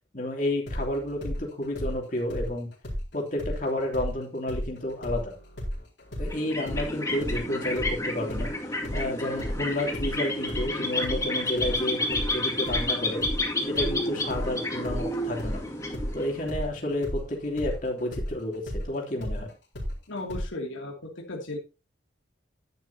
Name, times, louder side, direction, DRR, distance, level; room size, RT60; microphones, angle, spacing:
voice 1, 0.1-2.7 3.1-5.4 6.2-8.5 8.9-13.2 13.6-15.6 16.1-19.5, left 1 dB, 45° left, 0 dB, 3.0 m, -31 dB
sound 1, 0.7-4.2 4.5-12.3 12.7-20.5, equal, 60° left, 4.3 m, -34 dB
sound 2, 6.2-16.6, left 1 dB, 15° left, 2.3 m, -31 dB
voice 2, 20.1-20.9 21.3-21.6, left 2 dB, 85° left, 0 dB, 2.6 m, -35 dB
11.0 x 10.5 x 2.8 m, 0.29 s
head